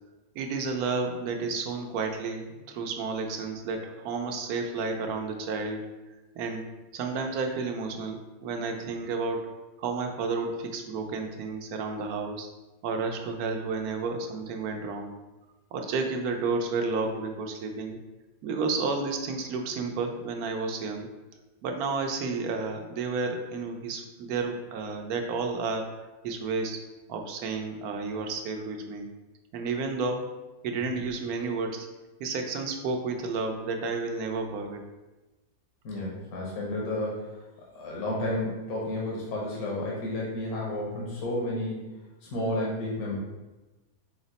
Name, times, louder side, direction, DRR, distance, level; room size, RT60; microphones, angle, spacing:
voice 1, 0.3-5.9 6.4-6.6 6.9-9.4 9.8-12.5 12.8-15.1 15.7-18.0 18.4-21.1 21.6-26.8 27.1-29.1 29.5-30.3 30.6-31.9 32.2-34.8, right 4 dB, 80° right, 3 dB, 1.1 m, -31 dB
voice 2, 35.8-37.4 37.7-41.9 42.2-43.1, left 1 dB, 80° left, -4 dB, 1.3 m, -31 dB
4.9 x 2.0 x 3.9 m, 1.1 s
omnidirectional pair, 1.6 m